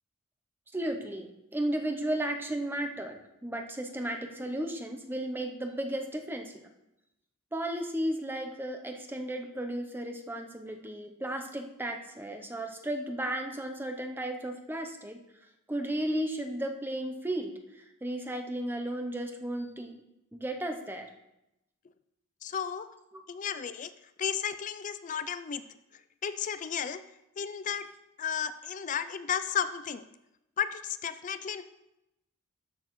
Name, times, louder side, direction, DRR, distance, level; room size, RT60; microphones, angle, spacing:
voice 1, 0.7-6.6 7.5-15.2 15.7-20.0 20.3-21.1 23.1-23.2, right 1 dB, 10° right, 4 dB, 0.6 m, -34 dB
voice 2, 22.4-22.9 23.3-23.9 24.2-25.6 26.2-27.0 27.4-27.8 28.2-30.0 30.6-31.6, left 8 dB, 35° left, 13 dB, 0.3 m, -33 dB
13.0 x 6.2 x 3.1 m, 0.88 s
head